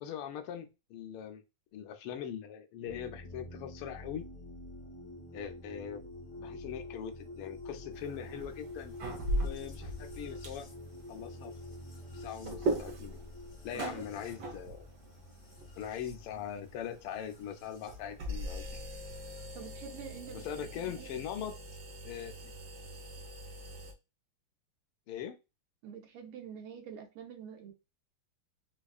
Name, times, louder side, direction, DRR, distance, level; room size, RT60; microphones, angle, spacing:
voice 1, 0.0-1.4 1.7-4.3 5.3-6.1 6.4-8.9 9.4-10.7 11.1-11.5 12.1-13.2 13.6-14.9 15.8-18.8 20.3-21.5 22.0-22.3 25.1-25.4, left 9 dB, 85° left, 1.5 m, -41 dB
sound 1, 2.9-17.9 19.1-19.7, left 2 dB, 40° left, 1.7 m, -48 dB
sound 2, 7.9-23.9, right 1 dB, 60° right, 1.3 m, -41 dB
voice 2, 13.7-14.0 19.5-20.5 20.7-21.5 25.8-27.7, right 8 dB, 80° right, 1.7 m, -46 dB
4.9 x 2.4 x 2.3 m
omnidirectional pair, 2.4 m